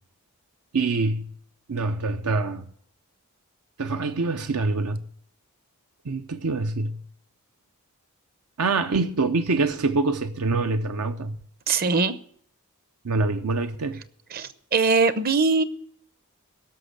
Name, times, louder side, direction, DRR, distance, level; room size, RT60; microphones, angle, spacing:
voice 1, 0.7-1.3 1.7-2.6 3.8-5.1 6.0-7.0 8.6-11.4 13.0-14.0, right 3 dB, 80° right, 0.7 m, -25 dB
voice 2, 11.7-12.2 14.3-15.6, right 4 dB, 45° right, 0.7 m, -21 dB
17.0 x 6.5 x 8.1 m
head